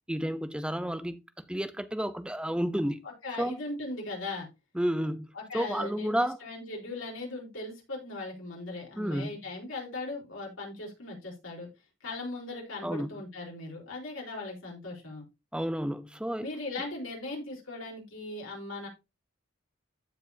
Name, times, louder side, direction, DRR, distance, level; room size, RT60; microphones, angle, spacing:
voice 1, 0.1-1.2 1.5-3.0 3.4-3.6 4.7-5.3 5.5-6.4 9.0-9.3 12.8-13.2 15.5-16.5, equal, 5° right, 0.6 m, -31 dB
voice 2, 3.2-4.5 5.3-11.7 12.0-15.2 16.4-18.9, left 2 dB, 90° left, 3.8 m, -38 dB
14.5 x 4.9 x 2.7 m
head